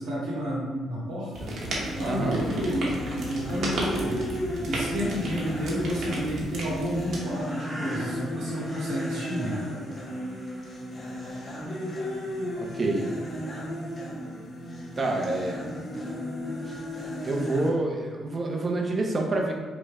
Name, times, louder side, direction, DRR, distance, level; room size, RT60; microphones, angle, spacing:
voice 1, 0.0-1.5 1.9-4.2 4.7-9.6, equal, 85° right, -8 dB, 1.4 m, -31 dB
sound 1, 1.3-7.2, right 1 dB, 65° right, 1.2 m, -34 dB
sound 2, 1.7-17.7, equal, 30° left, 1.1 m, -35 dB
voice 2, 2.1-2.4 12.6-13.1 15.0-15.6 15.9-16.0 16.7-16.8 17.2-19.5, right 2 dB, 35° right, 1 dB, 0.8 m, -27 dB
sound 3, 7.3-12.0, right 1 dB, 5° right, 0.7 m, -45 dB
5.2 x 2.3 x 3.6 m, 1.3 s
cardioid pair, 90°, 0 cm